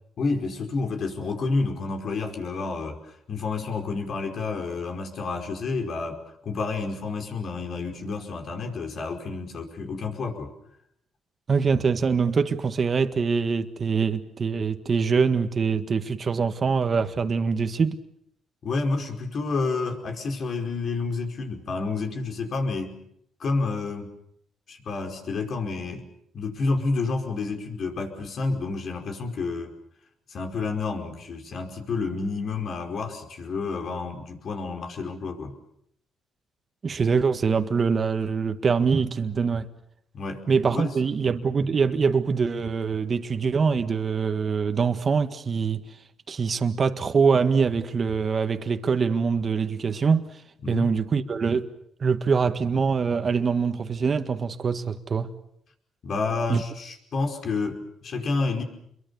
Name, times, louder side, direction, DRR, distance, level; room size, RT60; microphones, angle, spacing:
voice 1, 0.2-10.5 18.6-23.0 23.4-24.1 24.7-26.1 26.3-29.7 30.3-35.5 40.1-40.9 50.6-50.9 56.0-58.6, left 3 dB, 55° left, 5.0 m, -29 dB
voice 2, 11.5-18.0 36.8-39.7 40.5-45.8 46.3-50.2 50.7-51.7 52.0-55.3 56.5-56.6, right 5 dB, 40° right, 1.7 m, -24 dB
29.0 x 23.0 x 7.1 m
cardioid pair, 90°, 0 cm